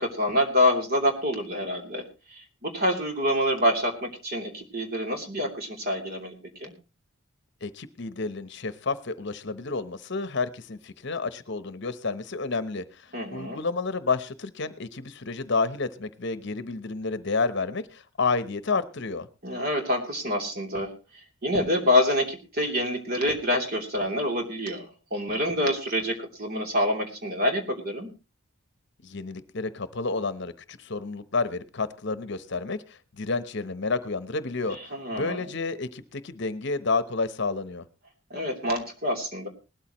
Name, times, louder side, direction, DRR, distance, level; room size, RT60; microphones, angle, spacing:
voice 1, 0.0-2.0 2.3-6.3 6.6-6.7 13.1-13.6 19.4-20.9 21.4-28.1 34.9-35.4 38.3-39.5, left 1 dB, 45° right, 2 dB, 3.1 m, -26 dB
voice 2, 7.6-19.3 29.0-37.8, left 4 dB, 55° left, 13 dB, 0.9 m, -30 dB
19.0 x 13.0 x 3.0 m, 0.30 s
head